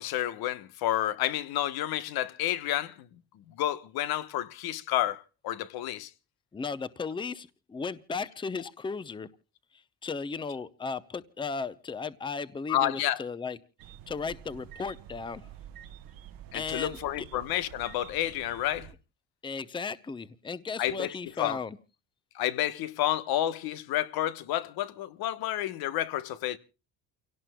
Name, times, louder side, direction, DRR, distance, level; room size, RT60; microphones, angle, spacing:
voice 1, 0.0-3.1 3.5-6.1 12.7-13.2 16.5-18.9 20.8-21.6 22.3-26.6, left 13 dB, 80° left, 1.1 m, -30 dB
voice 2, 6.5-9.3 9.7-13.6 14.1-15.5 16.5-17.3 19.4-21.8, left 5 dB, 15° left, 0.7 m, -36 dB
sound 1, 13.8-18.9, right 10 dB, 70° right, 1.1 m, -48 dB
29.5 x 17.5 x 2.2 m
cardioid pair, 140°, 36 cm